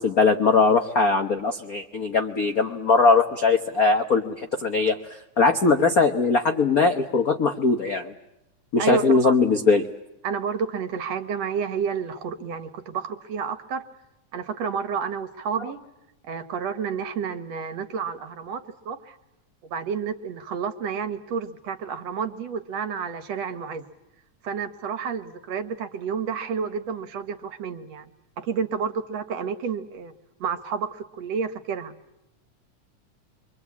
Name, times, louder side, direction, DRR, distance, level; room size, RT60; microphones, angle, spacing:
voice 1, 0.0-5.0 5.4-8.1 8.7-9.9, left 4 dB, 65° left, 5 dB, 0.8 m, -20 dB
voice 2, 8.8-9.4 10.2-13.8 14.3-15.8 16.2-19.2 19.6-23.9 24.4-28.1 28.4-30.1 30.4-31.9, right 6 dB, 60° right, 10 dB, 2.2 m, -30 dB
28.5 x 24.0 x 8.5 m, 0.92 s
omnidirectional pair, 3.5 m